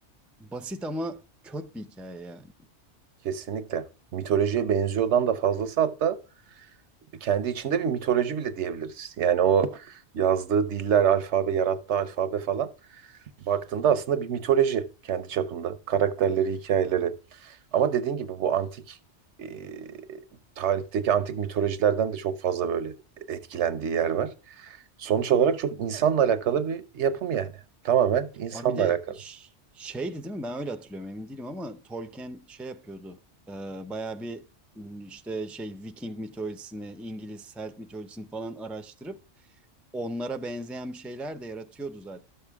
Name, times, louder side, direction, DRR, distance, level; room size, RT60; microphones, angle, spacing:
voice 1, 0.4-2.5 28.5-33.2 33.5-34.5 34.7-39.2 39.9-42.3, right 1 dB, ahead, 0.5 m, -37 dB
voice 2, 3.2-3.8 4.1-6.2 7.2-12.7 13.5-17.1 17.4-19.0 19.4-20.2 20.6-22.9 23.3-24.3 24.6-27.5 27.8-29.0, right 8 dB, 75° right, 1.1 m, -25 dB
12.5 x 6.8 x 3.5 m
omnidirectional pair, 1.2 m